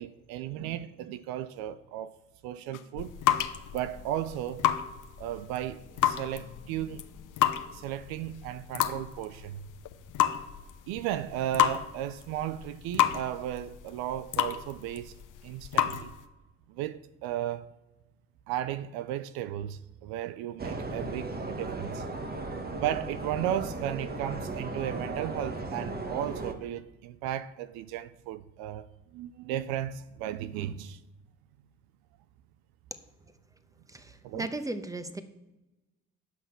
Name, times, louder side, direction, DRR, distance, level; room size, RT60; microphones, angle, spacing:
voice 1, 0.0-2.2 2.4-3.1 3.7-4.7 5.2-7.0 7.7-9.7 10.9-15.1 15.4-16.1 16.7-17.7 18.5-22.0 22.8-28.9 29.1-31.0 34.2-34.5, right 11 dB, 80° right, 0.6 m, -35 dB
sound 1, 2.7-16.2, left 11 dB, 60° left, 0.8 m, -31 dB
sound 2, 20.6-26.5, right 2 dB, 25° right, 1.4 m, -36 dB
voice 2, 33.9-35.2, right 2 dB, 10° right, 1.1 m, -36 dB
9.4 x 5.8 x 5.9 m
hypercardioid pair, 60°, 36 cm